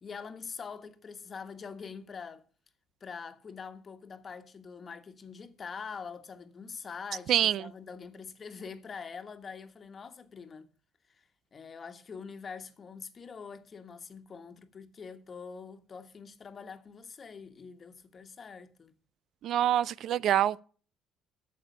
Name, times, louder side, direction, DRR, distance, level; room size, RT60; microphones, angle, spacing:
voice 1, 0.0-2.4 3.0-10.7 11.1-11.2 11.5-18.9, left 5 dB, 40° left, 1.3 m, -44 dB
voice 2, 7.3-7.6 19.4-20.6, right 11 dB, 65° right, 0.4 m, -25 dB
9.2 x 6.9 x 8.3 m
cardioid pair, 95°, 0 cm